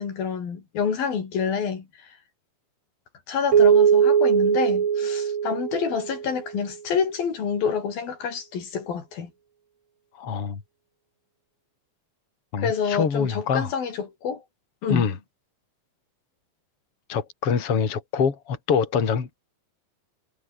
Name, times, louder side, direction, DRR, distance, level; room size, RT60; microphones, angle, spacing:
voice 1, 0.0-2.1 3.3-9.3 12.6-14.4 14.8-15.1, left 6 dB, 75° left, 5.6 m, -28 dB
Keyboard (musical), 3.5-6.5, right 7 dB, 45° right, 2.1 m, -20 dB
voice 2, 10.2-10.6 12.5-13.7 14.9-15.1 17.1-19.4, left 6 dB, 40° left, 3.9 m, -25 dB
omnidirectional pair, 4.2 m